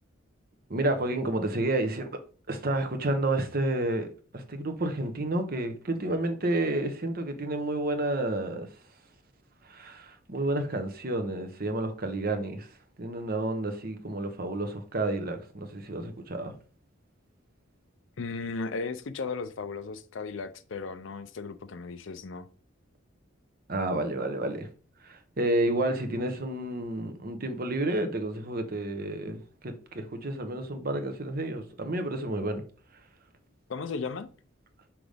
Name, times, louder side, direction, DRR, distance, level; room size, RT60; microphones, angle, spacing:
voice 1, 0.7-2.1 2.5-4.1 4.3-8.7 9.6-12.7 13.0-16.5 23.7-24.7 25.0-32.6, right 2 dB, 45° right, 1.0 m, -30 dB
voice 2, 18.2-22.5 33.7-34.3, left 4 dB, 65° left, 0.5 m, -35 dB
5.9 x 5.1 x 3.4 m
head